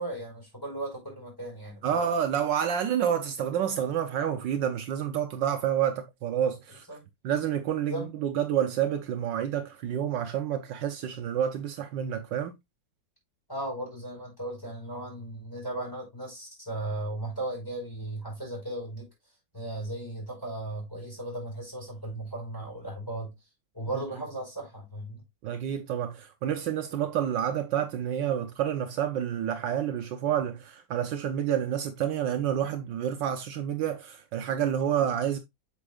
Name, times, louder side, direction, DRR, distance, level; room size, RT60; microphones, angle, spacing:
voice 1, 0.0-2.1 6.9-7.0 7.9-8.1 13.5-19.1 19.5-23.3 23.7-25.2, right 1 dB, 10° left, 5.0 m, -36 dB
voice 2, 1.8-6.8 7.2-12.5 23.9-24.0 25.4-35.4, right 9 dB, 70° right, 1.4 m, -29 dB
8.2 x 6.3 x 2.4 m
omnidirectional pair, 2.1 m